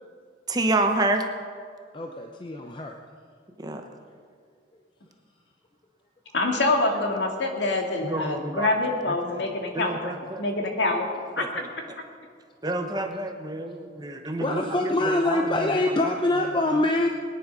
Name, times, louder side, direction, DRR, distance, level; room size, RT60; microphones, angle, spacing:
voice 1, 0.5-1.2 3.6-3.8 8.0-8.7 9.3-9.5 9.7-10.5 11.4-11.6 12.6-16.1, right 2 dB, 20° right, 5 dB, 1.0 m, -29 dB
voice 2, 1.9-2.9 14.4-17.1, left 2 dB, 25° left, 3 dB, 0.7 m, -24 dB
voice 3, 6.3-11.1 11.4-11.6, left 2 dB, 65° left, 2 dB, 2.2 m, -26 dB
22.0 x 10.0 x 5.3 m, 2.1 s
head